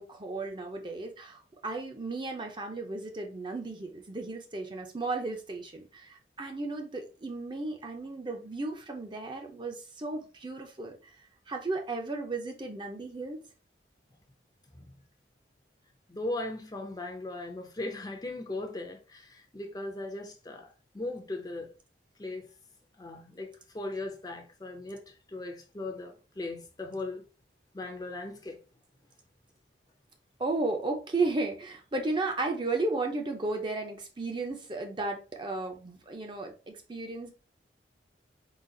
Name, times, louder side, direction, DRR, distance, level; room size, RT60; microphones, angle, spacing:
voice 1, 0.0-11.0 11.5-13.4 30.4-37.3, right 3 dB, 25° right, 0.6 m, -34 dB
voice 2, 16.1-20.7 20.9-21.7 22.2-22.5 23.0-23.5 23.7-25.0 25.3-27.2 27.7-28.6, left 2 dB, 20° left, 0.6 m, -38 dB
4.0 x 2.5 x 3.8 m
head